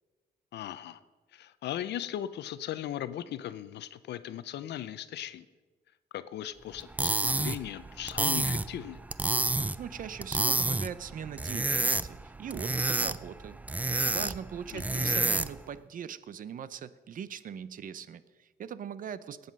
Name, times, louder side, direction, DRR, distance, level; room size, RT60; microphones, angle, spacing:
voice 1, 0.5-1.0 1.3-5.5 6.1-9.0 14.7-15.2, left 11 dB, 75° left, 14 dB, 0.6 m, -38 dB
sound 1, 6.8-15.7, right 2 dB, 10° right, 0.3 m, -30 dB
voice 2, 9.8-19.5, right 8 dB, 50° right, 16 dB, 0.6 m, -41 dB
19.0 x 8.0 x 5.3 m, 1.3 s
cardioid pair, 125°, 18 cm